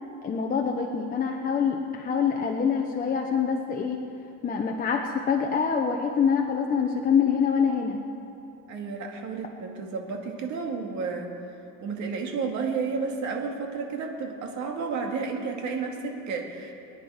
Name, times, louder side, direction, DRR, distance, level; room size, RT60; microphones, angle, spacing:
voice 1, 0.2-4.0 4.4-8.0, left 6 dB, 25° left, 1 dB, 0.8 m, -25 dB
voice 2, 8.7-11.3 11.8-16.7, right 4 dB, 55° right, 2 dB, 2.2 m, -31 dB
24.0 x 9.8 x 4.9 m, 2.7 s
cardioid pair, 145°, 33 cm